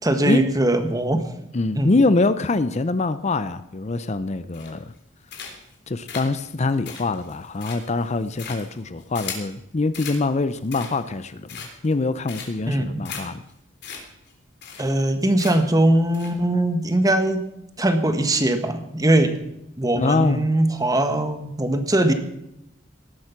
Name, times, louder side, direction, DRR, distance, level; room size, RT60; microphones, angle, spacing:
voice 1, 0.0-1.2 1.7-1.9 12.7-13.0 14.8-17.4 17.8-19.4 19.8-22.1, right 1 dB, 20° right, 8 dB, 1.6 m, -21 dB
voice 2, 1.5-4.9 5.9-13.4 19.9-20.5, left 3 dB, 35° left, 13 dB, 0.6 m, -24 dB
sound 1, 4.5-5.0 5.3-5.7 6.1-9.5 9.9-10.2 10.6-11.1 11.5-11.9 12.3-12.7 13.0-13.2 13.5-13.6 13.8-14.0 14.3-14.4 14.6-15.1 15.4-15.8 16.1-16.3, left 7 dB, 60° left, 3.5 m, -37 dB
18.0 x 12.0 x 5.9 m, 0.81 s
head